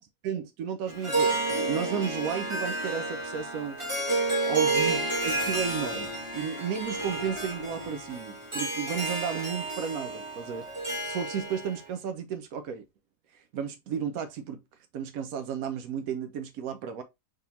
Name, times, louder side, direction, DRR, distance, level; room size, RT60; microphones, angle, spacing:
voice 1, 0.2-3.8 4.5-10.7 11.0-12.8 13.5-14.6 14.9-17.0, right 7 dB, 80° right, 1.1 m, -33 dB
Harp, 0.9-11.8, right 2 dB, 20° right, 1.3 m, -30 dB
sound 1, 5.1-6.5 6.8-8.3, left 1 dB, 20° left, 1.0 m, -46 dB
3.7 x 3.4 x 2.7 m
omnidirectional pair, 1.5 m